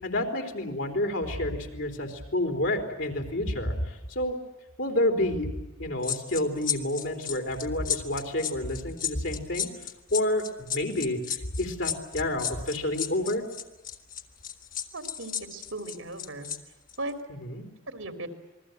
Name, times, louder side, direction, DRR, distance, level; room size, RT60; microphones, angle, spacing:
voice 1, 0.0-4.4 4.8-5.5 5.8-9.7 10.1-13.4 17.3-17.7, left 1 dB, 65° left, 4 dB, 3.6 m, -29 dB
sound 1, 6.0-16.6 16.9-17.1, left 9 dB, 40° left, 1.7 m, -33 dB
voice 2, 14.9-16.5 17.0-17.1 17.9-18.3, right 2 dB, 75° right, 7 dB, 3.1 m, -37 dB
28.0 x 21.5 x 8.0 m, 0.95 s
head